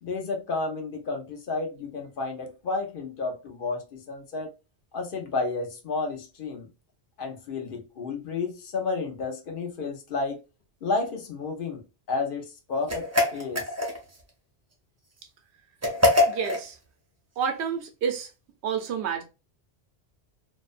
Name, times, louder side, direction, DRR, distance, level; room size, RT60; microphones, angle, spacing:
voice 1, 0.0-4.5 4.9-6.7 7.2-10.4 10.8-11.8 12.1-13.7, left 3 dB, 60° left, 0.7 m, -31 dB
sound 1, 12.9-14.2 15.8-16.7, left 2 dB, 25° right, 0.4 m, -23 dB
voice 2, 16.3-16.8 17.4-18.3 18.6-19.2, right 7 dB, 90° right, 0.9 m, -29 dB
2.5 x 2.1 x 2.4 m
omnidirectional pair, 1.1 m